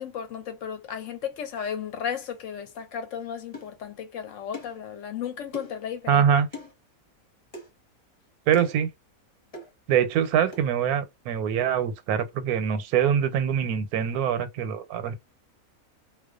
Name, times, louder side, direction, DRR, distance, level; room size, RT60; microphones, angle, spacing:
voice 1, 0.0-6.2, left 8 dB, 65° left, 0.9 m, -34 dB
sound 1, 3.5-3.7 4.5-4.8 5.5-5.8 6.5-6.7 7.5-7.7 8.5-8.8 9.5-9.7 10.5-10.7, equal, 30° left, 0.9 m, -38 dB
voice 2, 6.1-6.5 8.5-8.9 9.9-15.1, right 8 dB, 85° right, 1.1 m, -24 dB
2.4 x 2.2 x 2.3 m
omnidirectional pair, 1.5 m